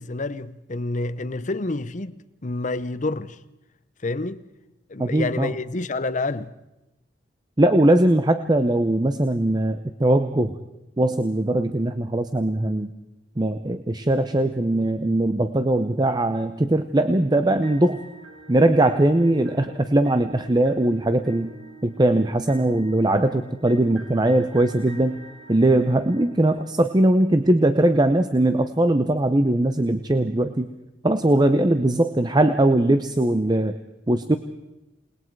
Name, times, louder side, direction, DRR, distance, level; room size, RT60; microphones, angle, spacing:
voice 1, 0.0-2.1 2.4-3.4 4.0-4.5 4.9-6.5, left 2 dB, 40° left, 0.8 m, -28 dB
voice 2, 5.0-5.5 7.6-10.6 11.0-12.9 13.4-18.0 18.5-21.5 21.8-25.2 25.5-30.7 31.0-33.7 34.1-34.4, right 1 dB, 25° right, 0.7 m, -20 dB
sound 1, 17.6-27.7, right 2 dB, 85° right, 4.7 m, -46 dB
28.5 x 20.0 x 4.7 m
head